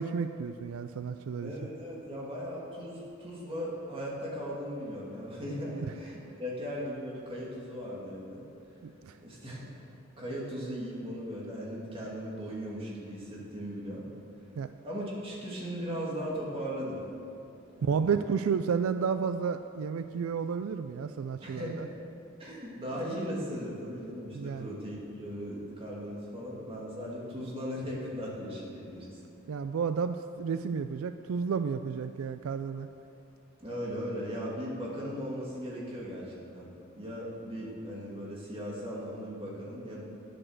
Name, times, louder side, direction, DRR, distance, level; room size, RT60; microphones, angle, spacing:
voice 1, 0.0-1.5 8.8-9.2 14.6-14.7 17.8-21.9 24.3-24.7 29.5-32.9, right 6 dB, 80° right, 10 dB, 0.4 m, -31 dB
voice 2, 1.4-8.4 9.2-14.0 14.8-17.0 17.7-18.1 21.4-21.8 22.4-29.1 33.6-36.7 37.0-40.0, equal, 25° right, -5 dB, 2.4 m, -38 dB
10.0 x 7.7 x 6.4 m, 2.7 s
head